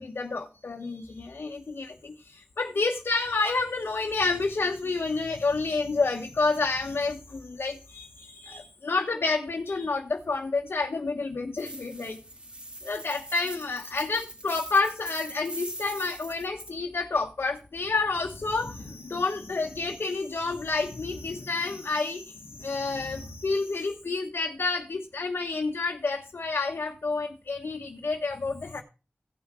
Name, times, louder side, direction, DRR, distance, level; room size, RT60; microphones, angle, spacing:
voice 1, 0.0-12.2 12.8-28.8, left 3 dB, 70° left, 2 dB, 1.3 m, -29 dB
sound 1, 11.6-16.7, right 1 dB, 25° right, 2.8 m, -41 dB
16.5 x 6.1 x 4.4 m, 0.32 s
wide cardioid pair, 80°, 4 cm